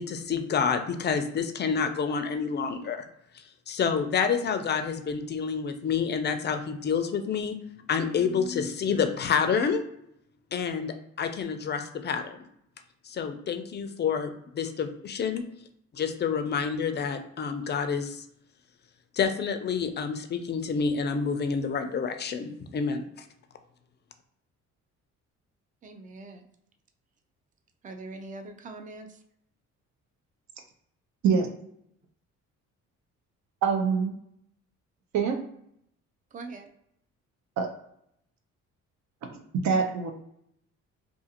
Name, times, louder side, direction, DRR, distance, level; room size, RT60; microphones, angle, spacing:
voice 1, 0.0-3.0 3.3-7.6 7.9-9.8 10.5-12.4 13.0-15.4 15.9-18.2 19.1-23.1, left 6 dB, 35° left, 7 dB, 0.4 m, -28 dB
voice 2, 25.8-26.5 27.8-29.2 36.3-36.7, right 3 dB, 25° right, 5 dB, 0.4 m, -42 dB
voice 3, 33.6-34.2 35.1-35.4 37.6-37.7 39.2-40.1, right 5 dB, 70° right, 4 dB, 0.6 m, -25 dB
2.5 x 2.4 x 2.8 m, 0.73 s
cardioid pair, 90°, 30 cm